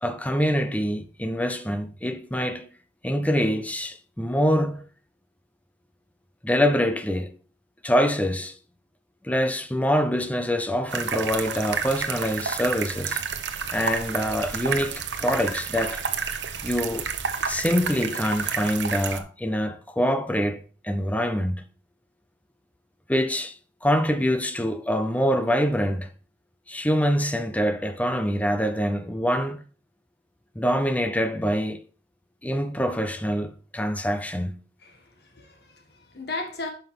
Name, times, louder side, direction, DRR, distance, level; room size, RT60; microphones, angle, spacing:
voice 1, 0.0-2.7 3.0-4.8 6.4-7.3 7.8-8.5 9.2-13.2 13.7-16.0 16.6-17.1 17.5-21.6 23.1-23.5 23.8-26.1 26.7-29.6 30.6-31.8 32.4-34.6, equal, 10° left, 0.7 m, -25 dB
sound 1, 10.9-19.2, right 6 dB, 85° right, 0.9 m, -30 dB
voice 2, 34.8-36.7, left 2 dB, 60° left, 1.6 m, -36 dB
10.5 x 5.7 x 3.7 m
head